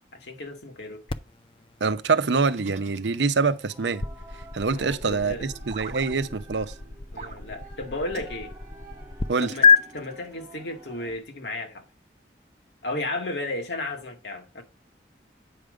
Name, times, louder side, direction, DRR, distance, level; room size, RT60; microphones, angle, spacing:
voice 1, 0.1-1.0 4.7-5.5 7.1-8.5 9.4-9.7 9.9-11.8 12.8-14.6, left 2 dB, 75° left, 1.8 m, -33 dB
sound 1, 1.1-9.3 9.6-9.8, left 6 dB, 30° left, 0.4 m, -28 dB
voice 2, 1.8-4.0 4.5-6.7 9.3-9.5, right 4 dB, 80° right, 0.7 m, -25 dB
sound 2, 2.6-3.7 5.7-6.1 7.1-7.4 8.1-8.3 9.4-10.3, right 4 dB, 40° right, 0.6 m, -43 dB
sound 3, 3.7-11.2, right 2 dB, 20° right, 3.1 m, -49 dB
8.7 x 5.1 x 4.7 m
head